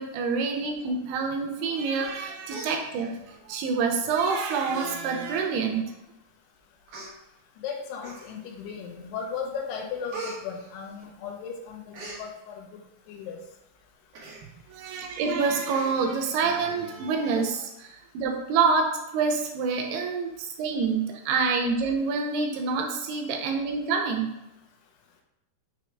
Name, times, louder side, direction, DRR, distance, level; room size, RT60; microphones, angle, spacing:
voice 1, 0.0-5.9 14.7-18.9 19.1-24.3, right 5 dB, 90° right, 2 dB, 2.6 m, -27 dB
Human voice, 2.0-2.2 2.5-3.4 4.1-4.3 4.7-4.9 5.3-5.4 6.2-6.3 6.9-7.1 8.0-8.6 9.0-9.4 9.7-11.4 11.7-12.2 14.1-14.4 14.8-14.9 15.2-15.3 15.7-16.3 16.7-16.8, right 3 dB, 60° right, 2.5 m, -41 dB
voice 2, 7.6-12.8 13.1-13.4, left 6 dB, 85° left, 2 dB, 2.9 m, -36 dB
6.7 x 3.1 x 4.5 m, 0.88 s
omnidirectional pair, 4.5 m